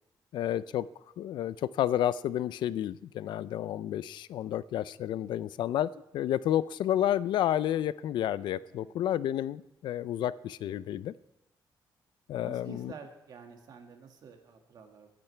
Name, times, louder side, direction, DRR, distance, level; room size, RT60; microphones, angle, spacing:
voice 1, 0.3-0.9 1.2-11.1 12.3-12.9, left 11 dB, 85° left, 18 dB, 0.4 m, -30 dB
voice 2, 8.7-9.1 12.4-15.1, right 5 dB, 60° right, 4 dB, 1.9 m, -49 dB
22.5 x 10.5 x 3.3 m, 0.91 s
cardioid pair, 135°, 8 cm